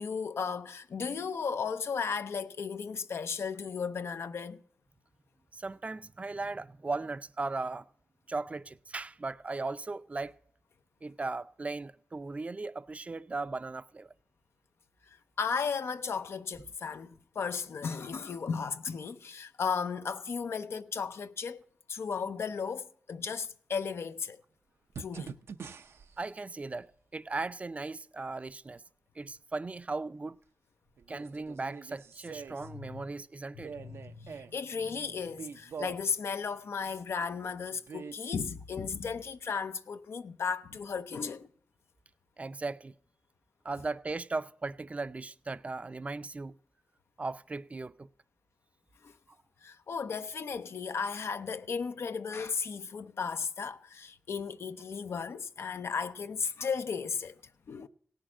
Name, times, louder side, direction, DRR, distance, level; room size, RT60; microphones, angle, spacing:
voice 1, 0.0-4.6 15.1-21.6 21.9-24.4 25.0-25.3 32.6-33.0 33.5-41.5 49.0-49.1 49.6-57.4 57.7-57.9, left 5 dB, 80° left, 0.6 m, -35 dB
voice 2, 5.5-7.9 8.3-10.4 11.0-14.1 26.2-28.8 29.2-30.4 31.1-33.7 42.4-42.9 43.6-46.5 47.2-48.1, right 3 dB, 30° right, 0.4 m, -37 dB
sound 1, 24.9-26.2 28.0-28.1 31.0-32.7 33.5-34.5 35.3-36.2 37.7-38.5 39.1-39.2, right 6 dB, 85° right, 0.6 m, -44 dB
17.0 x 6.4 x 6.0 m
wide cardioid pair, 85°, 4 cm